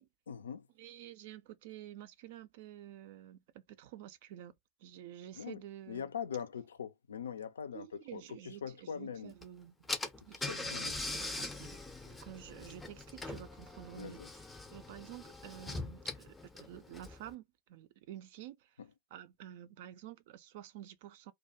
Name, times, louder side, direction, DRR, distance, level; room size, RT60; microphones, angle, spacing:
voice 1, 0.3-0.6 5.3-5.6 5.9-9.3 10.3-11.0 14.0-14.3 18.8-18.9, left 7 dB, 70° left, 0.3 m, -42 dB
voice 2, 0.8-4.5 4.8-6.1 7.7-9.9 10.2-14.2 14.7-18.8 19.1-21.3, right 12 dB, 50° right, 0.3 m, -50 dB
Car / Engine, 9.4-9.5 9.9-17.3, left 2 dB, 10° left, 0.5 m, -42 dB
2.3 x 2.2 x 2.7 m
figure-of-eight pair, 90°, 0 cm